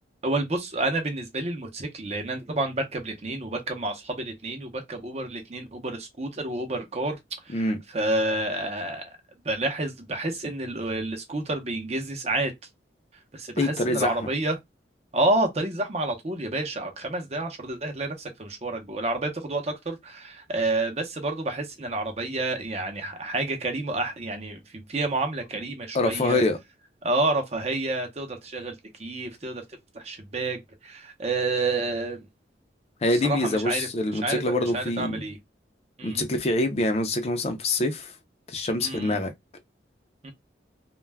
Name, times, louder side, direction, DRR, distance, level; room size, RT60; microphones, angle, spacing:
voice 1, 0.2-7.2 7.5-9.1 9.4-12.5 13.3-14.6 15.1-26.4 27.0-28.7 29.0-29.6 29.9-32.3 33.2-33.9 34.2-35.4 36.0-36.2 38.8-39.2 40.2-40.3, right 2 dB, 35° right, 0.6 m, -29 dB
voice 2, 13.6-14.2 25.9-26.6 33.0-35.2 36.0-38.1 38.5-39.3, left 2 dB, 35° left, 0.4 m, -25 dB
2.2 x 2.1 x 3.3 m
head